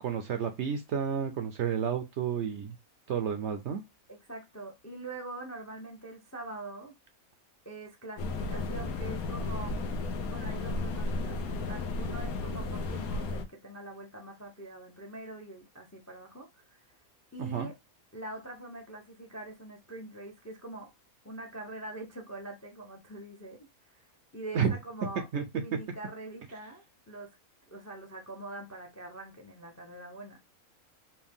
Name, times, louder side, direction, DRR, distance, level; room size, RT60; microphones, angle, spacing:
voice 1, 0.0-2.7 3.1-3.8 17.4-17.7 24.5-24.8 25.3-25.4, right 7 dB, 65° right, 0.7 m, -31 dB
voice 2, 4.1-6.9 7.6-9.8 10.3-16.9 17.3-17.7 18.1-20.9 21.2-24.0 24.3-25.3 25.5-27.3 27.7-30.4, right 2 dB, 20° left, 0.4 m, -44 dB
sound 1, 8.2-13.4, left 2 dB, 80° left, 1.2 m, -33 dB
4.4 x 2.2 x 3.5 m
omnidirectional pair, 1.5 m